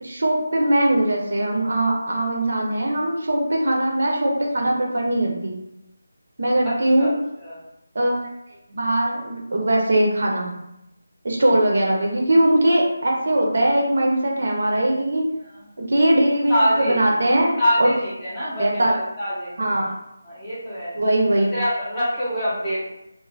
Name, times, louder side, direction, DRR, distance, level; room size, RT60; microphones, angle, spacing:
voice 1, 0.0-5.5 6.4-7.1 7.9-8.3 8.7-10.5 11.2-15.3 15.8-17.9 18.4-18.9 19.6-19.9 20.9-21.5, right 1 dB, 50° right, -1 dB, 0.5 m, -21 dB
voice 2, 6.6-7.1 7.4-7.6 15.5-15.6 16.5-17.0 17.6-19.9 20.2-20.9 21.3-22.8, equal, 5° left, -12 dB, 0.6 m, -25 dB
2.5 x 2.0 x 3.1 m, 0.86 s
figure-of-eight pair, 175°, 0 cm